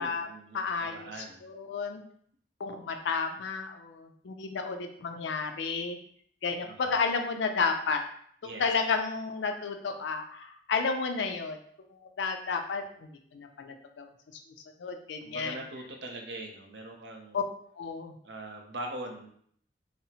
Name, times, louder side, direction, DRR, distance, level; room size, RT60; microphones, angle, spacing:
voice 1, 0.0-1.4 6.7-7.0 8.4-8.7 15.2-17.4 18.2-19.3, right 1 dB, 70° right, 2 dB, 0.6 m, -42 dB
voice 2, 0.5-2.0 2.6-6.0 6.4-8.0 8.6-11.6 11.9-14.1 14.8-15.6 17.3-17.4 17.8-18.2, left 5 dB, 80° left, 6 dB, 0.4 m, -32 dB
4.0 x 2.0 x 2.7 m, 0.62 s
head